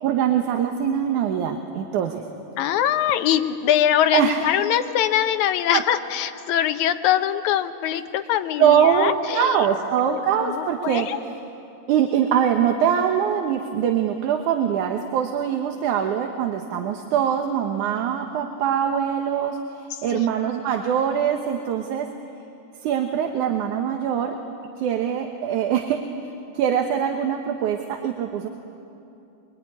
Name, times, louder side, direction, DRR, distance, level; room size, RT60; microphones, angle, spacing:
voice 1, 0.0-2.2 4.1-4.4 5.7-5.8 8.6-11.4 11.9-22.1 22.8-24.4 24.8-26.0 26.5-28.5, right 8 dB, 75° right, 4 dB, 2.6 m, -23 dB
voice 2, 2.6-9.7 10.0-11.2 20.1-20.3, left 10 dB, 75° left, 10 dB, 2.2 m, -23 dB
24.5 x 24.0 x 9.8 m, 2.7 s
omnidirectional pair, 3.6 m